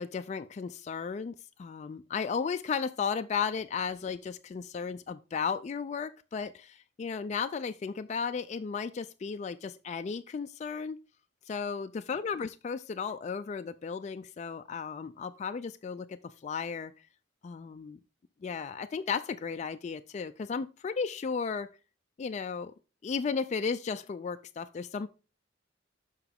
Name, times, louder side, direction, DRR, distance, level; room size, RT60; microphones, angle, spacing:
voice 1, 0.0-11.0 11.5-16.9 17.4-18.0 18.4-21.7 22.2-22.7 23.0-25.1, left 5 dB, 40° left, 0.3 m, -34 dB
7.1 x 5.7 x 3.5 m
head